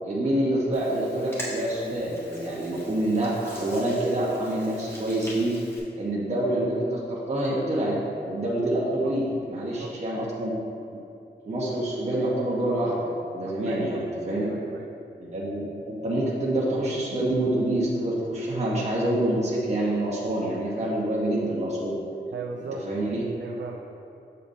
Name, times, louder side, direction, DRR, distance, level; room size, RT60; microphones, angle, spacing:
voice 1, 0.0-5.5 5.9-7.9 8.2-10.5 10.9-11.0 11.4-14.5 15.2-21.9 22.7-23.2, right 1 dB, 40° right, -6 dB, 1.1 m, -27 dB
Hands, 0.7-5.8, equal, 15° left, 1.4 m, -43 dB
voice 2, 9.6-9.9 13.4-13.9 14.3-14.9 22.3-22.8 23.4-23.8, right 4 dB, 85° right, 0 dB, 0.5 m, -38 dB
7.1 x 6.7 x 2.7 m, 2.6 s
wide cardioid pair, 130°, 18 cm